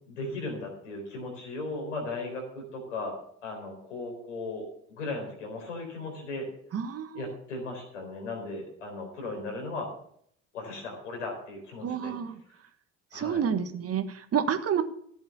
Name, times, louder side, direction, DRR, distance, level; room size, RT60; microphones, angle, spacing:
voice 1, 0.1-3.2 3.4-6.5 7.1-9.9 10.5-12.1 13.1-13.4, left 2 dB, 80° left, 1 dB, 4.2 m, -37 dB
voice 2, 6.7-7.2 11.8-12.4 13.1-14.8, right 8 dB, 40° right, 9 dB, 1.4 m, -29 dB
14.0 x 8.0 x 6.9 m, 0.65 s
figure-of-eight pair, 50°, 36 cm